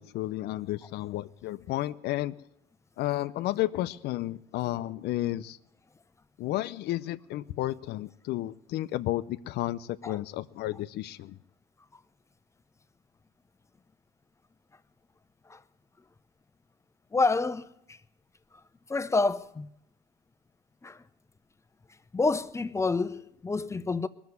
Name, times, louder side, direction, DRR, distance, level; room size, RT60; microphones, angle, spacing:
voice 1, 0.0-2.3 3.0-5.6 6.4-11.4, left 15 dB, 80° left, 0.6 m, -32 dB
voice 2, 17.1-18.0 18.9-19.7 20.8-21.0 22.1-24.1, left 3 dB, 15° left, 0.6 m, -28 dB
20.5 x 7.1 x 9.4 m
cardioid pair, 110°, 17 cm